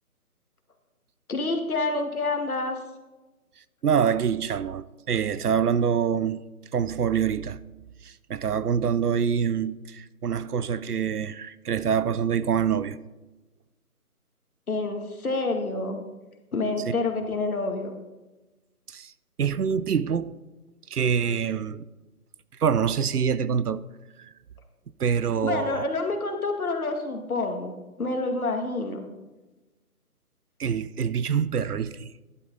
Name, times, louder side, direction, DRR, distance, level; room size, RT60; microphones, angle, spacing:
voice 1, 1.3-2.8 14.7-16.0 16.5-17.9 25.4-29.1, left 3 dB, 70° left, 2.0 m, -28 dB
voice 2, 3.8-6.4 6.7-7.6 8.0-13.0 16.9-17.0 18.9-19.1 19.4-20.3 20.9-21.9 22.6-23.8 24.2-24.3 25.0-25.8 30.6-32.1, right 7 dB, 85° right, 0.7 m, -25 dB
11.5 x 8.4 x 4.0 m
figure-of-eight pair, 165°, 45 cm